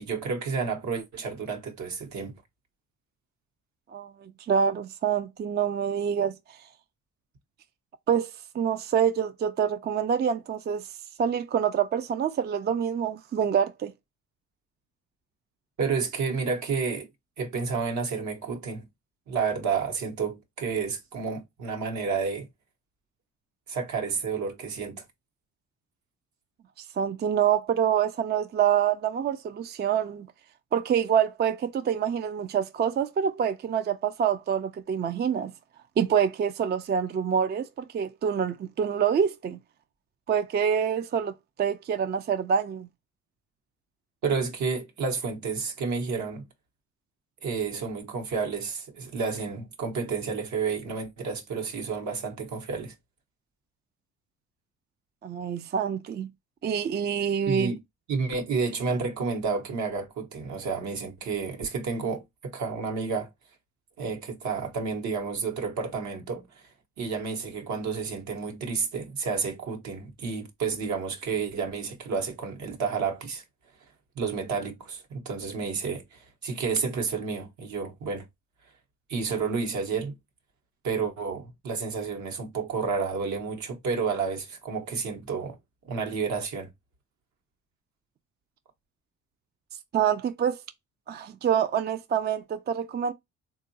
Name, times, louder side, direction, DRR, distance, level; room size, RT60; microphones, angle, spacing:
voice 1, 0.0-2.3 15.8-17.1 17.4-18.9 19.3-22.5 23.7-25.0 44.2-46.5 47.4-52.9 57.5-57.8 58.1-63.3 64.0-66.7 67.0-73.4 74.1-78.3 79.1-80.1 80.8-85.6 85.8-86.7, right 5 dB, 70° right, 1.1 m, -30 dB
voice 2, 3.9-6.6 8.1-10.9 11.2-13.9 26.8-30.3 30.7-35.5 36.0-39.6 40.3-41.3 41.6-42.9 55.2-56.3 56.6-57.7 89.9-90.6 91.1-93.1, right 8 dB, 35° right, 0.4 m, -26 dB
3.7 x 2.4 x 2.7 m
cardioid pair, 90°, 30 cm